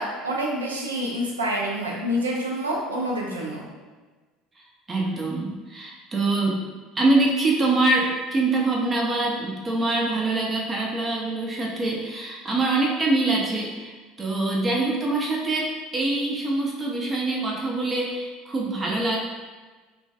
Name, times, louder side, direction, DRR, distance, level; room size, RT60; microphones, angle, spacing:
voice 1, 0.0-3.6, equal, 75° right, -2 dB, 0.4 m, -27 dB
voice 2, 4.9-6.7 7.0-19.2, right 2 dB, 25° right, -2 dB, 0.5 m, -24 dB
3.0 x 2.2 x 2.6 m, 1.3 s
figure-of-eight pair, 65°, 0 cm